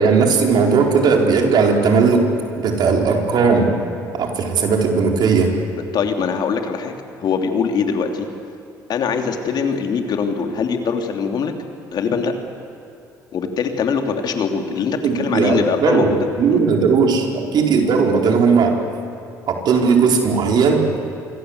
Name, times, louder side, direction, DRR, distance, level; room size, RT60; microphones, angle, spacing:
voice 1, 0.0-2.3 2.6-3.7 4.1-5.6 15.0-18.8 19.5-20.9, right 5 dB, 60° right, 2 dB, 4.6 m, -17 dB
voice 2, 5.9-8.3 8.9-11.5 11.9-12.3 13.3-16.2 16.5-16.6, left 6 dB, 60° left, 5 dB, 3.2 m, -22 dB
26.5 x 24.0 x 8.2 m, 2.6 s
supercardioid pair, 75°, 8 cm